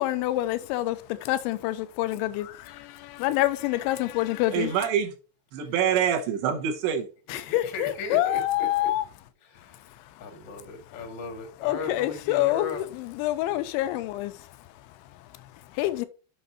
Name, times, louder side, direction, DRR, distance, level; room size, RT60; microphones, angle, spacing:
voice 1, 0.0-4.8 7.3-9.1 9.6-10.2 11.6-16.1, left 15 dB, 85° left, 3.0 m, -28 dB
voice 2, 4.5-5.1 5.5-7.1, right 8 dB, 75° right, 3.0 m, -25 dB
voice 3, 7.3-8.9 9.4-12.8, left 4 dB, 55° left, 1.2 m, -37 dB
7.9 x 5.8 x 4.0 m
omnidirectional pair, 5.5 m